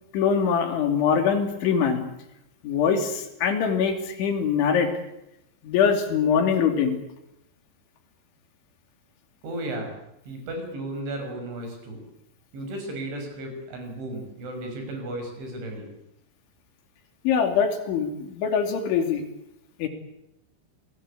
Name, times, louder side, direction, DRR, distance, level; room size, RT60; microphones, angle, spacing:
voice 1, 0.1-2.1 2.6-4.9 5.6-7.0 17.3-19.2 19.8-19.9, left 7 dB, 85° left, 5 dB, 5.2 m, -23 dB
voice 2, 9.4-10.0 10.3-12.0 12.5-15.9, right 1 dB, 85° right, 4 dB, 8.5 m, -34 dB
27.5 x 19.5 x 8.5 m, 0.83 s
omnidirectional pair, 5.2 m